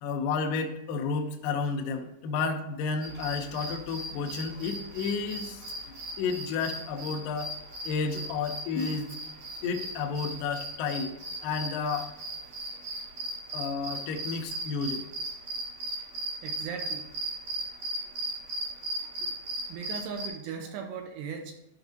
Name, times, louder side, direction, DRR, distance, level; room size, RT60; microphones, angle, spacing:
voice 1, 0.0-5.6 6.2-7.5 7.8-9.1 9.6-11.1 11.4-12.1 13.5-15.0, left 5 dB, 85° left, 3 dB, 2.0 m, -31 dB
sound 1, 3.0-20.3, right 1 dB, 65° right, 2.0 m, -37 dB
voice 2, 16.4-17.1 18.7-19.2 19.7-21.7, right 6 dB, 85° right, 4 dB, 2.7 m, -39 dB
11.5 x 5.6 x 2.7 m, 0.84 s
omnidirectional pair, 5.1 m